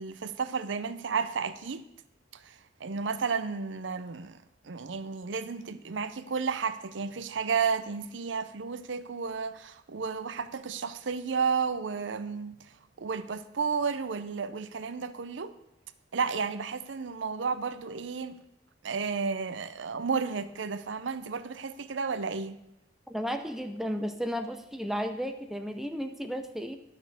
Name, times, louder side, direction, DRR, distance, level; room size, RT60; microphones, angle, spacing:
voice 1, 0.0-1.8 2.4-2.5 2.8-4.4 4.6-12.6 13.0-15.5 16.1-18.4 18.8-22.6, right 5 dB, 85° right, 0.6 m, -32 dB
voice 2, 23.1-26.8, equal, ahead, 0.6 m, -33 dB
10.5 x 6.4 x 6.7 m
head